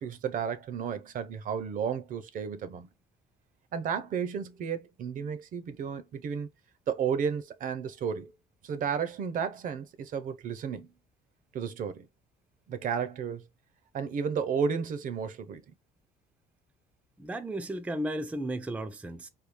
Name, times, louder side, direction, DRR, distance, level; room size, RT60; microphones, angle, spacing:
voice 1, 0.0-2.9 3.7-6.5 6.9-8.3 8.6-10.9 11.5-12.1 12.7-13.4 13.9-15.7, right 7 dB, 50° right, 0.6 m, -32 dB
voice 2, 17.2-19.3, right 1 dB, 10° right, 0.4 m, -34 dB
3.6 x 2.3 x 3.0 m
cardioid pair, 110°, 17 cm